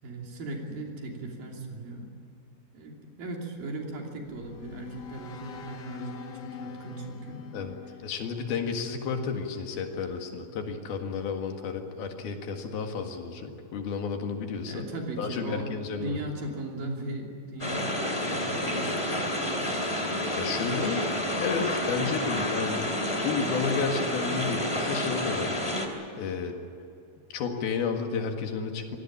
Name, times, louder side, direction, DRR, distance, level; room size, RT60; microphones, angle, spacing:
voice 1, 0.0-2.1 2.7-7.4 14.7-15.7 16.0-19.6, right 2 dB, 65° right, 1 dB, 4.7 m, -38 dB
sound 1, 4.2-9.2, left 7 dB, 55° left, 2.1 m, -44 dB
voice 2, 8.0-14.9 15.2-16.2 20.0-22.9 23.2-25.6 26.2-26.6 27.3-29.0, left 5 dB, 75° left, 4 dB, 3.7 m, -32 dB
sound 2, 17.6-25.9, left 1 dB, 10° left, 2.0 m, -29 dB
25.0 x 18.0 x 8.7 m, 2.6 s
omnidirectional pair, 4.4 m